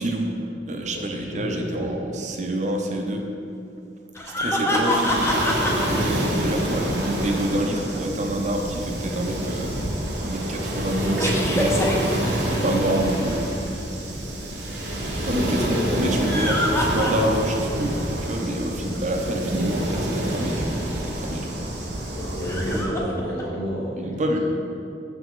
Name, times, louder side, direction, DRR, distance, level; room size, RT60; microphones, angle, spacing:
voice 1, 0.0-3.2 4.2-11.8 12.6-13.5 15.2-21.5 24.0-24.4, right 1 dB, 40° right, 2 dB, 0.6 m, -27 dB
voice 2, 0.9-2.1 10.3-11.5 15.3-16.1 18.8-18.9 22.1-24.4, equal, 70° left, -4 dB, 1.4 m, -31 dB
sound 1, 4.1-5.9 11.2-13.2 16.1-17.6 18.0-18.1 20.5-20.6 22.4-23.4, left 1 dB, 15° left, 0.6 m, -25 dB
Waves surf, 4.8-22.9, right 1 dB, 75° right, 1.0 m, -28 dB
6.0 x 5.9 x 3.7 m, 2.6 s
head